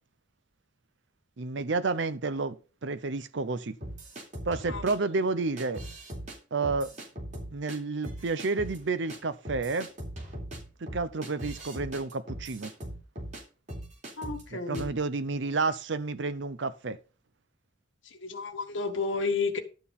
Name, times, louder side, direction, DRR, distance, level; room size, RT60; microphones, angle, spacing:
voice 1, 1.4-3.8 4.5-5.8 6.5-6.9 7.5-9.9 10.8-12.7 14.5-17.0, right 3 dB, 70° right, 0.7 m, -30 dB
sound 1, 3.8-4.9 5.6-6.4 6.6-7.8 8.0-8.8 9.1-9.2 9.4-13.4 13.7-14.4 14.7-15.0, right 1 dB, 40° right, 3.5 m, -40 dB
voice 2, 14.2-14.9 18.2-19.6, left 4 dB, 90° left, 1.6 m, -31 dB
11.5 x 4.3 x 7.1 m
head